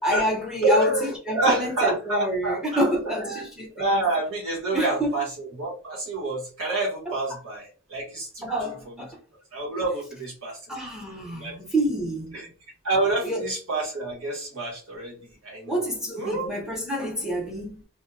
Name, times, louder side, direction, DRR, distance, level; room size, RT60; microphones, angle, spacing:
voice 1, 0.0-4.0 4.7-5.2 7.1-7.4 8.4-9.2 10.7-12.4 13.2-13.5 15.7-17.8, equal, 5° right, 0.6 m, -28 dB
voice 2, 0.6-2.8 3.3-3.4 3.7-5.3 5.6-8.5 9.5-10.6 11.3-11.5 12.3-12.5 12.8-15.2 15.4-15.8 16.2-16.5, right 2 dB, 85° right, 1.1 m, -27 dB
2.6 x 2.1 x 2.5 m
head